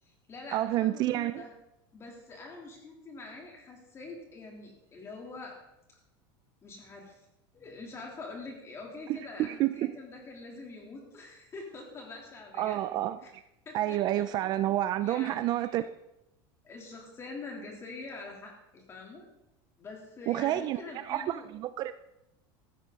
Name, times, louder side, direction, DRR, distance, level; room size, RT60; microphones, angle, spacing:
voice 1, 0.0-1.5 1.9-5.6 5.9-6.0 6.6-7.3 7.5-12.8 13.2-13.3 13.7-14.3 15.0-15.9 16.6-19.3 19.8-21.5, left 3 dB, 20° left, 0 dB, 3.5 m, -45 dB
voice 2, 0.5-1.4 9.5-9.7 12.6-13.2 13.7-15.9 20.3-20.8 21.1-21.9, right 14 dB, 35° right, 13 dB, 0.4 m, -29 dB
15.0 x 13.5 x 4.1 m, 0.88 s
supercardioid pair, 155°, 12 cm